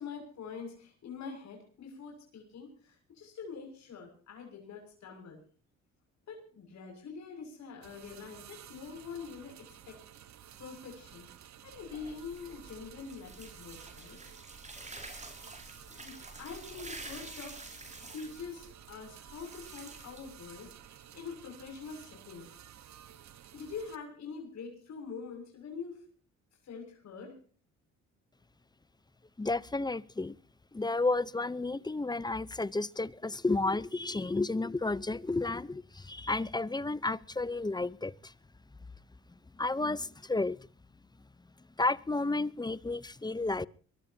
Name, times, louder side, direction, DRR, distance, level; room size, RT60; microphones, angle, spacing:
voice 1, 0.0-5.4 6.3-10.0 10.6-11.3 11.6-14.2 15.9-17.6 18.1-22.5 23.5-26.0 26.6-27.4, left 5 dB, 65° left, 6.7 m, -45 dB
sound 1, 7.8-24.0, right 10 dB, 65° right, 1.5 m, -53 dB
sound 2, 11.7-20.9, right 2 dB, 25° right, 5.5 m, -49 dB
voice 2, 29.4-30.4 30.7-38.3 39.6-40.6 41.8-43.7, left 2 dB, 15° left, 0.8 m, -32 dB
23.5 x 20.5 x 2.9 m
cardioid pair, 90°, 30 cm